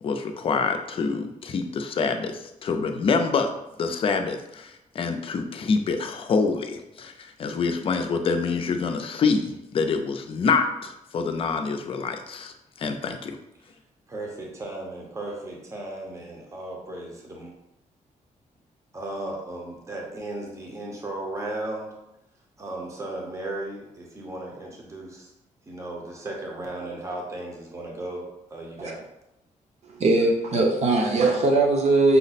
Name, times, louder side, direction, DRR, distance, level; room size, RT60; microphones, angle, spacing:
voice 1, 0.0-3.5 3.8-13.4, left 4 dB, 40° left, 6 dB, 0.4 m, -26 dB
voice 2, 14.1-17.5 18.9-21.9 22.6-25.3 25.7-28.2 28.5-29.0, right 2 dB, 20° right, 0 dB, 0.7 m, -35 dB
voice 3, 29.8-32.2, right 2 dB, 50° right, 1 dB, 0.8 m, -20 dB
5.7 x 2.1 x 4.0 m, 0.88 s
wide cardioid pair, 160°, 14 cm